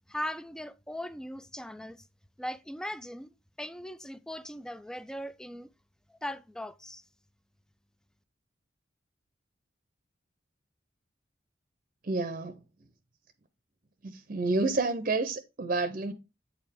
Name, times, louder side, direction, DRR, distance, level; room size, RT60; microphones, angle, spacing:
voice 1, 0.1-2.1 2.4-3.3 3.6-5.7 6.1-7.0, equal, 5° left, 0.3 m, -39 dB
voice 2, 12.0-12.9 14.0-16.1, right 3 dB, 45° right, 0.6 m, -30 dB
8.3 x 4.6 x 3.5 m
head